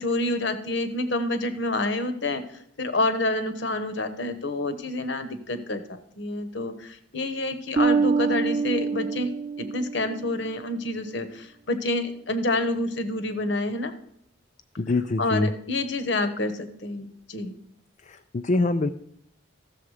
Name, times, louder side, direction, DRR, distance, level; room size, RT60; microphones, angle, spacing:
voice 1, 0.0-2.4 2.8-9.3 9.6-13.9 15.2-17.5, left 2 dB, 60° left, 9 dB, 1.0 m, -28 dB
Bass guitar, 7.8-10.4, right 5 dB, 35° right, 0.3 m, -25 dB
voice 2, 14.8-15.5 18.0-18.9, left 2 dB, 35° left, 7 dB, 0.4 m, -25 dB
14.0 x 7.0 x 4.9 m, 0.71 s
head